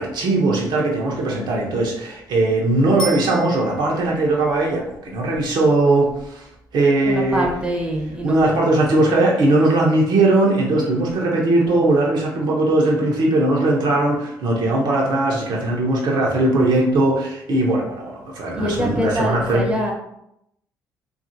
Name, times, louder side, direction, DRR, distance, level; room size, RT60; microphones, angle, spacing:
voice 1, 0.0-6.5 6.7-7.5 8.2-19.7, right 2 dB, 60° right, -2 dB, 0.7 m, -19 dB
Bicycle bell, 3.0-4.1 13.2-13.3, right 1 dB, 55° left, 0.8 m, -32 dB
voice 2, 7.0-8.8 11.7-11.9 18.6-19.9, equal, 10° right, 0 dB, 0.7 m, -25 dB
2.7 x 2.4 x 2.6 m, 0.79 s
hypercardioid pair, 50°, 9 cm